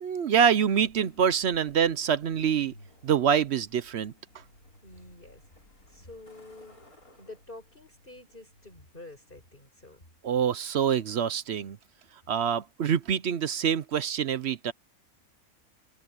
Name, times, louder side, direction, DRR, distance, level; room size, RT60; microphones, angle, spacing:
voice 1, 0.0-2.7 3.0-4.1 10.2-11.8 12.3-14.7, right 8 dB, 60° right, 0.8 m, -25 dB
Truck, 0.6-9.3, left 1 dB, 85° left, 6.3 m, -56 dB
voice 2, 4.8-5.4 5.9-6.8 7.2-10.0, left 2 dB, 35° left, 6.0 m, -48 dB
open air
omnidirectional pair, 1.5 m